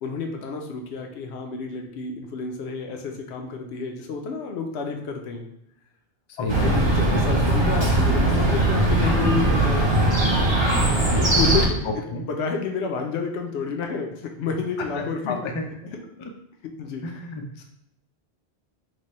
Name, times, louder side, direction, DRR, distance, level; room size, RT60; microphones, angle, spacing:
voice 1, 0.0-5.5 6.4-10.1 11.0-11.9 12.2-15.5 15.9-16.0 16.6-17.1, left 5 dB, 80° left, 3 dB, 0.9 m, -30 dB
voice 2, 6.4-6.8 7.0-7.2 11.8-12.2 14.9-15.7 17.0-17.4, left 3 dB, 50° left, 3 dB, 0.3 m, -30 dB
Chirp tweet, 6.5-11.7, right 2 dB, 30° right, 0.6 m, -20 dB
3.2 x 2.2 x 4.1 m, 0.79 s
omnidirectional pair, 1.1 m